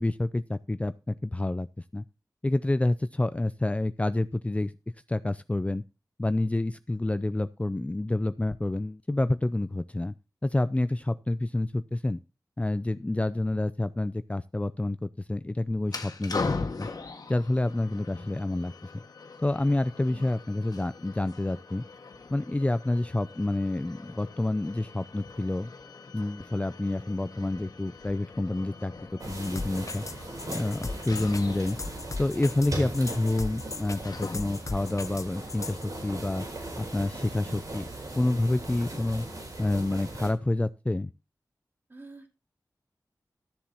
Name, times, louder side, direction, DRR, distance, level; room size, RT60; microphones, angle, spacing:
voice 1, 0.0-2.0 2.4-4.7 5.1-5.8 6.2-10.1 10.4-12.2 12.6-16.9 17.3-19.0 19.4-21.8 22.3-25.7 26.1-28.9 29.3-30.0 30.5-31.8 32.2-36.5 36.8-37.9 38.1-39.2 39.6-41.1, left 2 dB, 20° left, 13 dB, 0.5 m, -28 dB
sound 1, 15.8-34.8, left 4 dB, 75° left, 1.5 m, -41 dB
sound 2, 29.2-40.3, right 1 dB, 65° right, 5.0 m, -39 dB
sound 3, 29.3-35.8, left 3 dB, 55° left, 0.8 m, -37 dB
voice 2, 41.9-42.3, right 2 dB, 30° right, 3 dB, 2.8 m, -46 dB
13.0 x 7.2 x 4.4 m, 0.28 s
wide cardioid pair, 75°, 7 cm